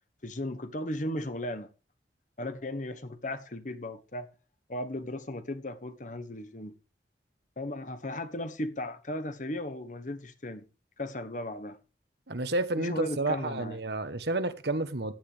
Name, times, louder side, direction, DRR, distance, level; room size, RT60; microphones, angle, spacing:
voice 1, 0.2-1.7 2.4-4.3 4.7-6.7 7.6-10.7 11.0-11.8 12.8-13.8, left 1 dB, 45° left, 1.3 m, -36 dB
voice 2, 12.3-15.1, right 2 dB, 70° right, 1.3 m, -30 dB
15.0 x 10.0 x 3.4 m
head